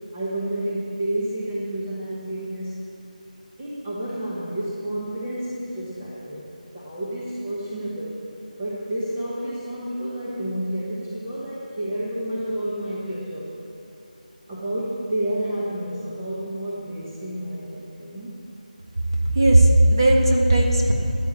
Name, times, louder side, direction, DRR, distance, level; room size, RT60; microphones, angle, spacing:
voice 1, 0.1-2.8 3.6-6.5 6.7-8.1 8.6-13.5 14.5-18.4, right 1 dB, 10° right, -9 dB, 1.0 m, -30 dB
voice 2, 19.3-20.9, right 1 dB, 30° right, 0 dB, 1.5 m, -16 dB
15.0 x 10.0 x 7.3 m, 2.7 s
figure-of-eight pair, 180°, 5 cm